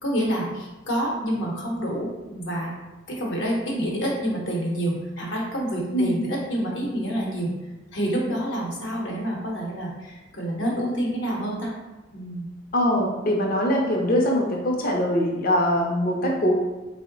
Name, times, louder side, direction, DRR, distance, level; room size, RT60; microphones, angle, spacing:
voice 1, 0.0-2.7 3.1-7.5 7.9-11.7 12.1-12.5, right 1 dB, 75° left, -3 dB, 0.8 m, -28 dB
voice 2, 12.7-16.5, equal, 50° left, 0 dB, 0.5 m, -22 dB
3.6 x 2.0 x 3.7 m, 1.1 s
head